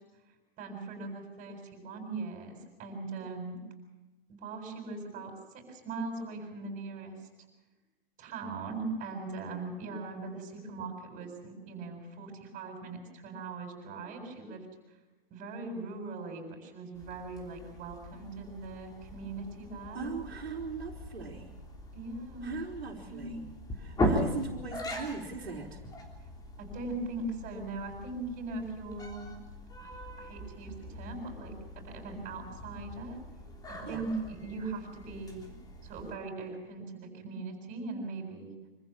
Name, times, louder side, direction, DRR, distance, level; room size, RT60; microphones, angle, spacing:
voice 1, 0.6-3.6 4.3-7.1 8.2-15.0 15.3-20.1 21.9-22.5 23.1-23.4 26.6-29.3 29.8-33.2 33.7-35.5 35.8-38.5, right 3 dB, 25° right, 3 dB, 7.6 m, -40 dB
sound 1, 16.9-36.1, left 1 dB, 15° left, 3.6 m, -40 dB
voice 2, 19.9-21.5 22.4-23.5 23.8-25.8 33.8-34.0, right 4 dB, 85° right, -1 dB, 3.6 m, -39 dB
26.0 x 15.0 x 7.3 m, 1.1 s
hypercardioid pair, 125°, 30 cm